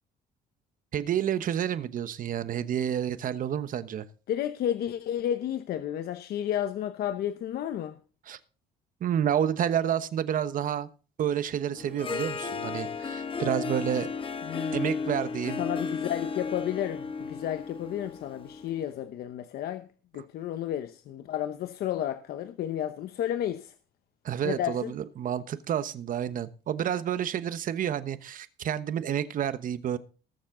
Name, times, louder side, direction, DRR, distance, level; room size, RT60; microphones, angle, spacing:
voice 1, 0.9-4.0 8.3-8.4 9.0-10.9 11.2-14.1 14.7-15.6 24.2-30.0, right 9 dB, 55° right, 1.1 m, -29 dB
voice 2, 4.3-8.0 14.4-15.0 15.6-19.9 20.1-23.7 24.4-24.9, left 11 dB, 65° left, 0.9 m, -32 dB
Harp, 11.8-18.9, left 5 dB, 30° left, 1.2 m, -34 dB
19.5 x 7.2 x 3.8 m
cardioid pair, 110°, 17 cm